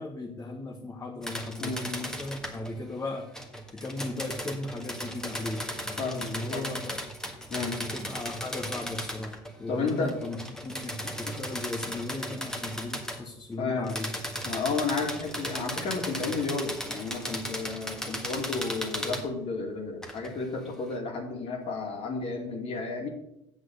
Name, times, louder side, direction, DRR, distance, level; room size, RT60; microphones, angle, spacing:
voice 1, 0.0-3.3 3.7-7.0 7.8-9.3 9.6-14.2, left 2 dB, 25° left, 0 dB, 1.3 m, -37 dB
sound 1, 1.2-2.7 3.3-9.5 9.9-13.2 13.8-19.3 20.0-20.3, equal, 5° left, 1.6 m, -36 dB
voice 2, 6.0-6.7 7.5-7.8 9.7-10.1 11.3-11.4 13.6-13.9 14.4-23.1, left 4 dB, 50° left, 2 dB, 2.4 m, -32 dB
8.0 x 6.2 x 6.5 m, 0.81 s
supercardioid pair, 95°, 13 cm